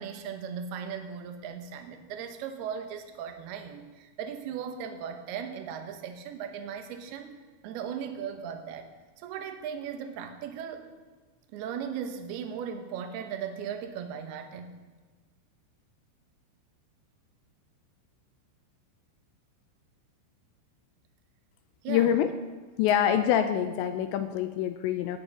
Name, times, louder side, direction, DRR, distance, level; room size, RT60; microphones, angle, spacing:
voice 1, 0.0-7.3 7.6-8.9 9.2-10.9 11.5-14.7 21.8-22.1, right 7 dB, 70° right, 6 dB, 2.6 m, -37 dB
voice 2, 21.9-22.3 22.8-25.2, left 10 dB, 85° left, 9 dB, 2.6 m, -25 dB
17.5 x 9.5 x 5.4 m, 1.4 s
omnidirectional pair, 5.6 m